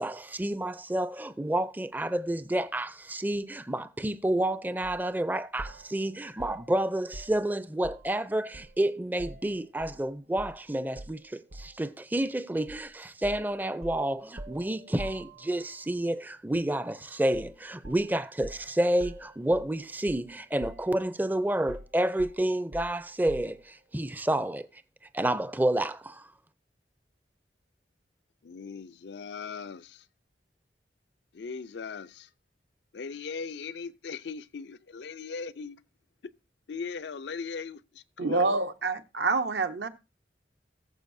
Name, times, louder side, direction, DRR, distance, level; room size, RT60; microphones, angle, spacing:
voice 1, 0.0-24.7 25.1-26.3, right 1 dB, 10° right, 0.4 m, -29 dB
sound 1, 4.8-5.0 5.6-8.2 8.5-10.0 10.4-10.6 11.0-11.9 12.7-12.9 13.2-15.8 17.3-17.6 17.8-20.3 20.6-21.2 21.7-23.7, right 1 dB, 50° right, 0.8 m, -45 dB
voice 2, 28.4-30.1 31.3-32.3 32.9-35.8 36.7-38.6, left 5 dB, 80° left, 0.5 m, -39 dB
voice 3, 38.2-39.9, right 3 dB, 75° right, 0.9 m, -27 dB
20.0 x 7.1 x 2.6 m
head